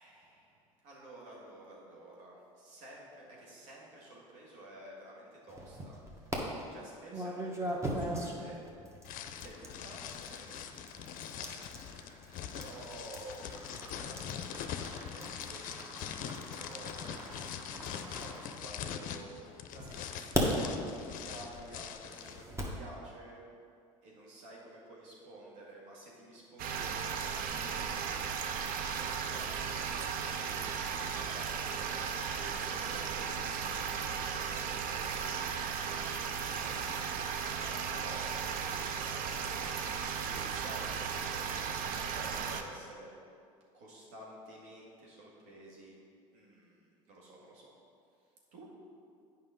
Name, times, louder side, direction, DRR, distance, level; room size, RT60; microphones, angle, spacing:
voice 1, 0.0-6.3 6.7-8.6 9.4-10.0 10.3-11.5 12.5-13.5 13.7-17.4 17.9-19.3 19.7-23.4 24.0-27.8 28.9-31.8 32.3-37.1 37.5-43.1 43.7-46.0 46.3-47.7 48.5-48.7, right 1 dB, 70° right, -4 dB, 2.0 m, -52 dB
sound 1, 5.5-6.4 7.1-19.1 19.8-22.8, right 1 dB, 15° right, 1.4 m, -40 dB
sound 2, 9.0-22.4, left 9 dB, 55° left, 0.6 m, -43 dB
sound 3, 26.6-42.6, right 6 dB, 55° right, 0.6 m, -36 dB
8.8 x 5.5 x 3.9 m, 2.4 s
hypercardioid pair, 75°, 17 cm